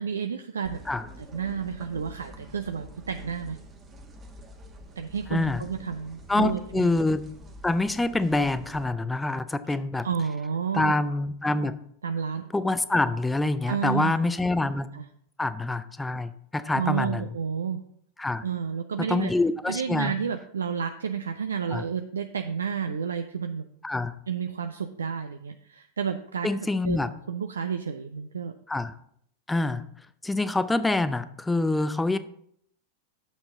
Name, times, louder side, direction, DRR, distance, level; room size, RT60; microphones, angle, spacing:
voice 1, 0.0-0.8 1.2-3.6 5.0-6.9 10.0-10.9 12.0-12.5 13.7-14.2 14.9-15.0 16.7-17.8 18.4-19.3 19.7-23.7 24.3-26.5 26.8-27.0 27.3-28.5, right 6 dB, 70° right, 7 dB, 0.4 m, -30 dB
sound 1, 0.7-8.8, equal, 20° right, 1.3 m, -46 dB
voice 2, 5.3-5.6 6.3-7.2 7.6-10.1 10.7-11.7 12.5-14.9 15.4-17.3 18.2-18.4 19.0-20.1 21.7-21.8 23.8-24.1 26.4-27.1 28.7-28.9 29.5-29.8 30.2-32.2, left 2 dB, 10° left, 13 dB, 0.5 m, -26 dB
8.1 x 7.0 x 3.8 m, 0.68 s
figure-of-eight pair, 90°, 0 cm